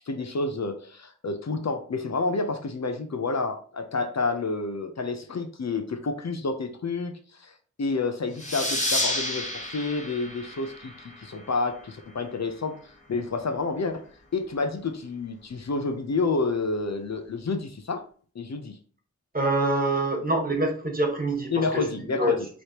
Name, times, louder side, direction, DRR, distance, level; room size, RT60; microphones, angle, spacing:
voice 1, 0.1-14.1 14.3-18.0 18.3-18.8 21.5-22.5, left 3 dB, 60° left, 6 dB, 0.7 m, -29 dB
sound 1, 8.4-11.6, left 1 dB, 25° left, 1.5 m, -30 dB
voice 2, 19.3-21.6 22.0-22.4, right 1 dB, 30° right, 1 dB, 1.5 m, -25 dB
4.8 x 3.1 x 2.9 m, 0.43 s
wide cardioid pair, 50°, 31 cm